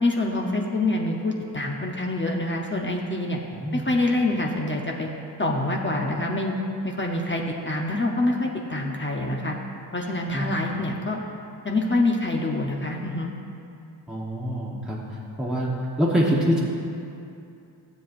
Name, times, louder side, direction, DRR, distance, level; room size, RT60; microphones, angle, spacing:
voice 1, 0.0-3.4 3.7-5.1 5.4-6.5 6.8-9.5 9.9-11.2 11.6-13.3, left 2 dB, 30° left, 0 dB, 0.8 m, -26 dB
voice 2, 14.1-16.6, equal, ahead, -6 dB, 1.1 m, -25 dB
15.5 x 7.9 x 2.5 m, 2.6 s
wide cardioid pair, 120°, 41 cm